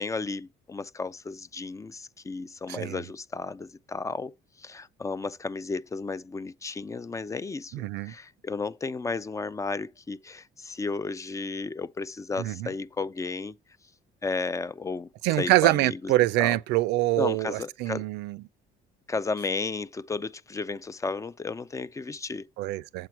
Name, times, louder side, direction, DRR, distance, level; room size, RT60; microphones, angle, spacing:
voice 1, 0.0-13.6 14.2-15.1 15.4-16.1 16.4-16.6 17.2-18.0 19.1-22.5, left 4 dB, 20° left, 0.3 m, -33 dB
voice 2, 2.7-3.0 7.7-8.1 12.4-12.7 15.2-18.4 22.6-23.1, right 17 dB, 90° right, 0.4 m, -25 dB
7.6 x 4.6 x 6.0 m
cardioid pair, 110°, 17 cm